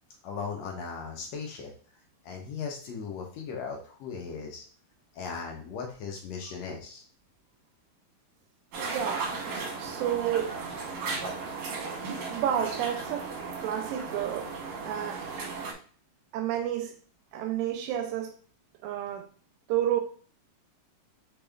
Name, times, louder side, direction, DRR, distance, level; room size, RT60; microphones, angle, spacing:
voice 1, 0.2-1.7 2.2-4.6 5.1-7.0, left 5 dB, 85° left, 1.5 m, -37 dB
sound 1, 8.7-15.7, right 4 dB, 65° right, 2.0 m, -36 dB
voice 2, 8.8-10.6 12.0-13.3 13.6-14.5 14.8-15.3 16.3-17.0 17.3-18.4 18.8-19.3 19.7-20.0, right 10 dB, 80° right, 2.1 m, -31 dB
5.3 x 4.3 x 2.3 m
omnidirectional pair, 4.1 m